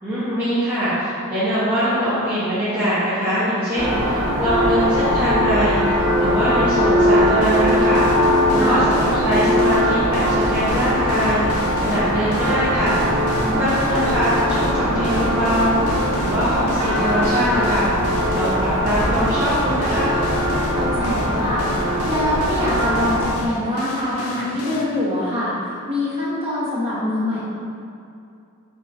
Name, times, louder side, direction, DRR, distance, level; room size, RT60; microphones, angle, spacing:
voice 1, 0.0-13.0 13.6-17.9 18.3-20.2, equal, 10° right, -13 dB, 0.8 m, -22 dB
sound 1, 3.8-23.2, equal, 85° right, 0.8 m, -20 dB
sound 2, 4.5-23.5, equal, 65° left, 1.0 m, -35 dB
sound 3, 7.4-24.9, left 3 dB, 80° left, 0.4 m, -35 dB
voice 2, 13.4-13.7 20.7-21.6 22.0-27.4, left 1 dB, 25° right, -9 dB, 1.1 m, -24 dB
4.5 x 3.8 x 2.6 m, 2.5 s
head